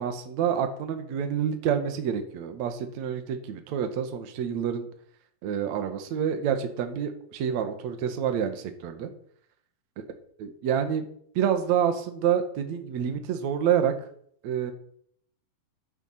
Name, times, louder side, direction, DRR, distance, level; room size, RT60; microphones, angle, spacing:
voice 1, 0.0-4.9 5.4-9.1 10.4-11.1 11.4-13.9 14.4-14.7, right 8 dB, 55° right, 7 dB, 2.4 m, -28 dB
12.0 x 11.5 x 5.9 m, 0.62 s
omnidirectional pair, 4.6 m